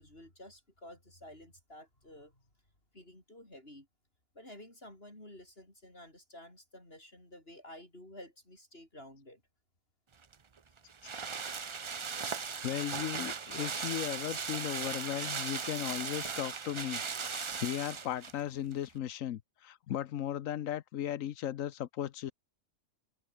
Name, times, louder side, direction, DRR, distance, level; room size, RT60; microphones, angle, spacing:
voice 1, 0.0-2.4 2.9-3.9 4.3-9.4, left 1 dB, 40° left, 7.8 m, -52 dB
sound 1, 10.2-18.4 18.7-18.8, right 5 dB, 45° right, 0.4 m, -38 dB
voice 2, 12.6-22.3, left 11 dB, 70° left, 1.1 m, -36 dB
omnidirectional pair, 1.5 m